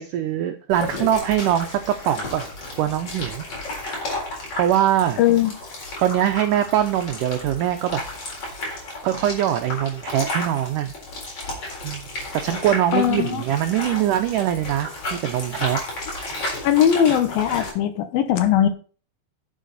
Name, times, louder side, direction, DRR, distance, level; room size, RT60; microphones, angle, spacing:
voice 1, 0.0-2.4 2.8-3.4 4.5-5.2 6.0-8.0 9.0-10.9 11.8-12.1 12.3-15.8, right 11 dB, 90° right, 7 dB, 1.8 m, -22 dB
sound 1, 0.7-17.7, left 2 dB, 40° left, 4.7 m, -33 dB
voice 2, 5.2-5.5 12.9-13.4 16.6-18.7, left 10 dB, 70° left, 9 dB, 2.6 m, -19 dB
11.0 x 7.4 x 4.1 m, 0.39 s
omnidirectional pair, 4.6 m